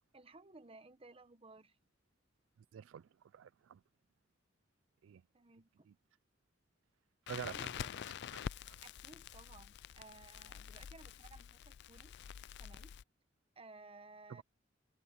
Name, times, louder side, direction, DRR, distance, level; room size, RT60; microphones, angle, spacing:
voice 1, 0.1-1.8 5.3-5.9 7.4-7.7 8.8-12.1 12.6-13.0 13.6-14.4, right 3 dB, 30° right, 1.1 m, -58 dB
voice 2, 2.7-3.8 5.0-5.2 5.9-6.0 7.3-8.8 14.3-14.4, right 8 dB, 80° right, 0.3 m, -49 dB
Crackle, 7.3-13.0, left 8 dB, 60° left, 0.4 m, -47 dB
head